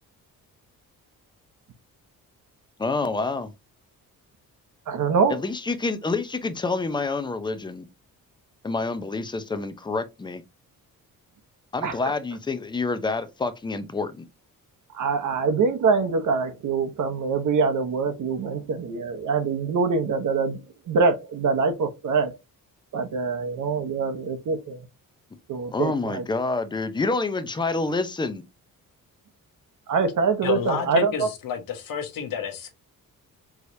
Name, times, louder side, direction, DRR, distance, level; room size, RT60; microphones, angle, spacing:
voice 1, 2.8-3.5 5.3-7.9 8.6-10.4 11.7-14.3 25.7-28.4, left 3 dB, 15° left, 0.5 m, -27 dB
voice 2, 4.9-5.4 11.8-11.9 15.0-20.6 20.9-22.3 22.9-24.8 25.5-26.2 29.9-31.3, right 4 dB, 60° right, 1.0 m, -24 dB
voice 3, 30.4-32.7, left 8 dB, 80° left, 1.1 m, -30 dB
4.8 x 3.2 x 2.6 m
cardioid pair, 135°, 34 cm